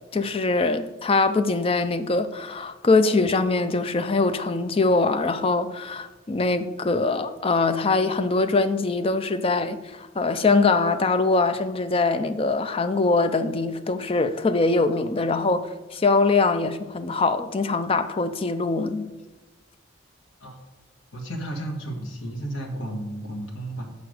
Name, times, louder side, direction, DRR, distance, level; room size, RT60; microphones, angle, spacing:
voice 1, 0.1-19.1, left 3 dB, 25° left, 0.4 m, -23 dB
voice 2, 21.1-23.9, right 1 dB, 80° left, 1.6 m, -33 dB
6.8 x 5.1 x 6.4 m
head